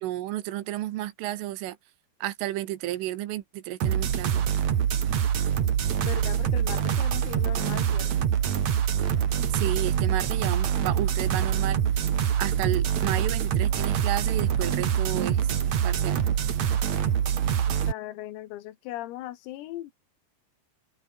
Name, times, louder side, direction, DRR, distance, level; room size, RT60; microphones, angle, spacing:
voice 1, 0.0-1.8 2.2-4.4 9.5-11.8 12.4-15.5 15.8-16.2, right 15 dB, 80° right, 3.8 m, -32 dB
sound 1, 3.8-17.9, right 9 dB, 55° right, 2.0 m, -25 dB
voice 2, 6.0-8.1 17.7-19.9, left 14 dB, 90° left, 4.3 m, -38 dB
omnidirectional pair, 5.9 m